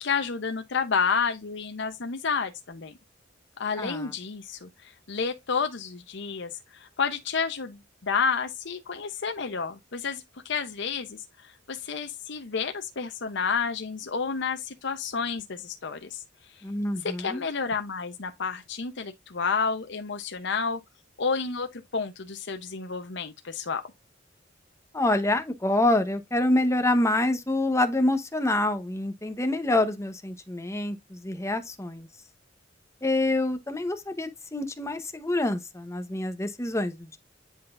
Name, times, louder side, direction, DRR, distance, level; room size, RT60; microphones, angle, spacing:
voice 1, 0.0-2.9 3.6-16.2 17.0-20.8 21.2-23.8, left 5 dB, 65° left, 0.8 m, -30 dB
voice 2, 3.8-4.1 16.6-17.4 24.9-32.1 33.0-37.2, left 1 dB, 15° left, 0.9 m, -26 dB
10.0 x 4.0 x 2.5 m
head